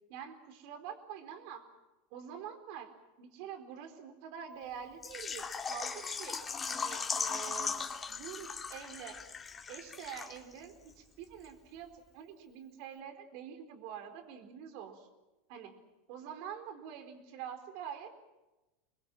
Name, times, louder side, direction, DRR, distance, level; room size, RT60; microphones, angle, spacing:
voice 1, 0.1-1.6 2.1-2.9 3.2-7.8 8.1-9.2 9.7-15.1 15.5-15.8 16.1-18.1, right 8 dB, 60° right, 7 dB, 4.2 m, -46 dB
Water / Liquid, 5.0-10.6 10.9-11.0 11.4-11.5, left 5 dB, 25° left, 2.6 m, -38 dB
27.5 x 21.5 x 7.6 m, 1.1 s
hypercardioid pair, 90°, 0 cm